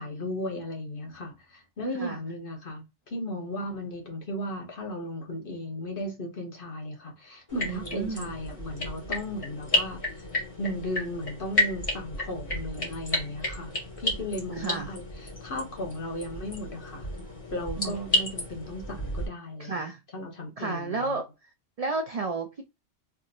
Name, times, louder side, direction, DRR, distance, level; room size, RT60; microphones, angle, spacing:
voice 1, 0.0-10.3 10.6-13.7 14.0-17.1 17.5-19.8 20.1-21.2, left 1 dB, 50° left, 1.1 m, -36 dB
sound 1, 7.5-19.3, left 1 dB, 30° left, 1.5 m, -32 dB
voice 2, 7.6-8.3 14.5-14.9 17.8-18.0 19.6-20.0 20.6-21.3 21.8-22.7, right 4 dB, 70° right, 0.3 m, -32 dB
3.5 x 2.7 x 2.4 m
omnidirectional pair, 1.2 m